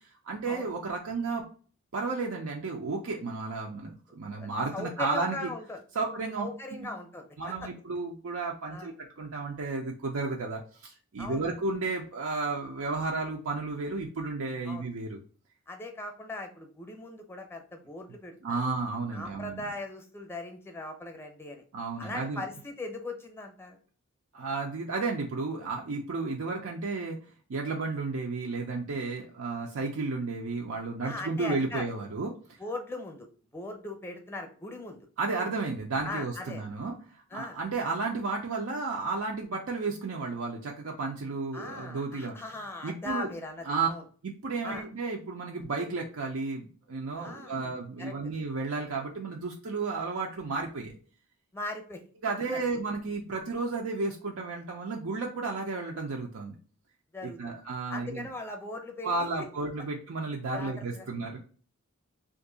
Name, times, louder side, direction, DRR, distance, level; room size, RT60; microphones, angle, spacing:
voice 1, 0.2-1.4 1.9-5.5 5.9-6.5 6.7-6.9 7.4-15.2 18.4-19.6 21.7-22.4 24.3-27.2 27.5-32.6 35.2-42.4 42.8-43.3 43.7-43.9 44.2-50.9 52.2-56.6 57.2-58.3 59.0-61.4, right 3 dB, 85° right, 0 dB, 0.5 m, -33 dB
voice 2, 4.3-5.8 6.4-7.7 8.7-8.9 11.2-11.5 14.7-14.8 15.7-18.6 19.1-21.6 22.0-23.8 31.0-31.9 32.6-33.3 33.5-35.0 36.0-36.6 37.3-37.6 41.5-44.0 44.6-44.9 47.2-47.7 48.0-48.1 51.5-52.0 52.5-52.6 57.1-57.5 57.9-59.3 60.5-61.1, left 2 dB, 10° left, 4 dB, 0.6 m, -39 dB
2.6 x 2.5 x 3.7 m, 0.41 s
head